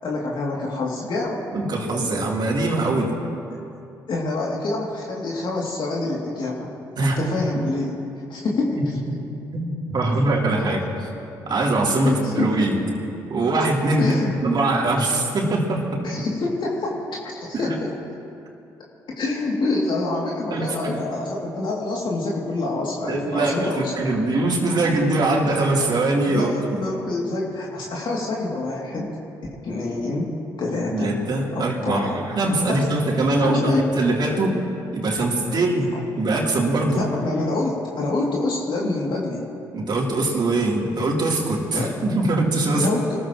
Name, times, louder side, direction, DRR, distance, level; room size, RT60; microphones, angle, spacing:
voice 1, 0.0-1.4 4.1-6.7 7.0-8.0 8.3-8.9 12.0-12.5 14.0-14.3 16.0-17.9 19.2-24.2 26.2-29.1 29.6-30.3 30.6-31.1 31.5-32.2 32.7-32.8 33.4-33.8 35.5-36.0 36.9-39.5 41.7-41.9 42.7-43.2, left 2 dB, 55° left, -4 dB, 2.8 m, -26 dB
voice 2, 1.5-3.1 7.0-7.2 8.8-9.2 9.5-11.1 11.4-12.8 13.3-14.1 14.4-15.9 17.6-17.7 20.5-21.0 23.1-26.8 30.9-34.6 34.9-35.9 36.2-37.0 39.7-42.9, right 2 dB, 50° right, -2 dB, 3.4 m, -22 dB
25.0 x 14.0 x 3.1 m, 2.7 s
supercardioid pair, 55°, 9 cm